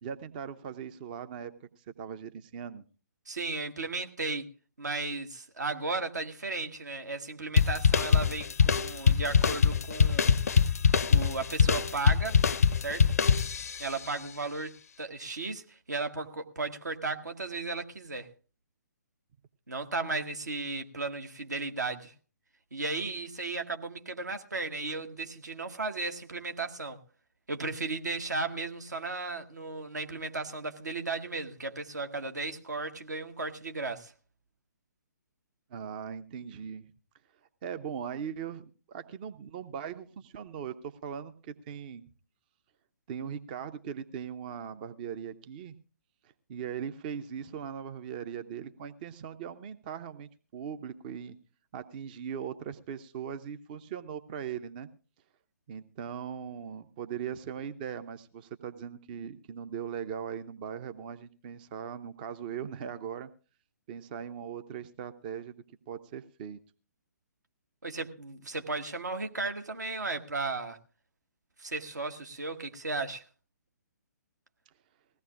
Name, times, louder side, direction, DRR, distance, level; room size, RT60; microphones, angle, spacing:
voice 1, 0.0-2.8 35.7-36.9 37.6-42.0 43.1-45.7 46.5-51.4 51.7-54.9 55.7-63.3 63.9-65.6 65.9-66.6, right 8 dB, 30° right, 12 dB, 0.6 m, -39 dB
voice 2, 3.3-4.5 4.8-10.3 11.1-12.4 12.8-13.1 13.8-18.3 19.7-22.1 22.7-27.0 27.5-34.1 67.8-70.8 71.6-73.2, right 3 dB, 70° right, 6 dB, 1.4 m, -35 dB
sound 1, 7.6-13.9, left 6 dB, 55° left, 0.5 m, -23 dB
20.0 x 16.5 x 2.4 m, 0.36 s
figure-of-eight pair, 130°, 10 cm